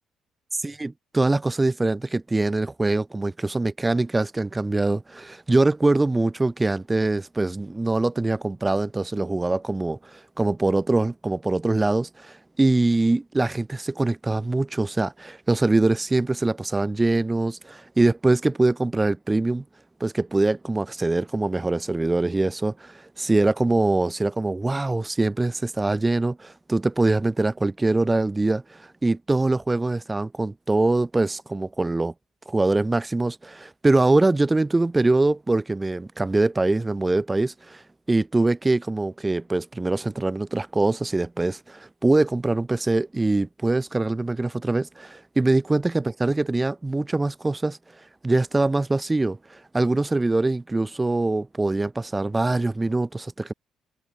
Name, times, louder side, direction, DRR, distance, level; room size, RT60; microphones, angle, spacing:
voice 1, 0.6-19.6 20.0-32.1 32.5-37.8 38.1-47.8 48.2-53.5, right 2 dB, 20° right, 3.9 m, -23 dB
supercardioid pair, 65°, 0 cm